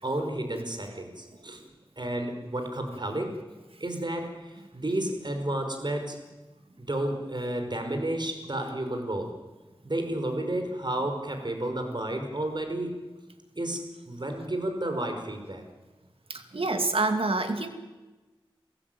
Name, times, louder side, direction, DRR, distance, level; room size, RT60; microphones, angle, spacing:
voice 1, 0.0-1.6 2.0-3.4 3.8-6.2 6.8-9.3 9.8-13.0 13.6-15.7, right 1 dB, 55° right, 5 dB, 5.2 m, -31 dB
voice 2, 16.3-17.7, right 2 dB, 85° right, 7 dB, 2.5 m, -27 dB
29.0 x 16.0 x 9.3 m, 1.2 s
wide cardioid pair, 55°, 9 cm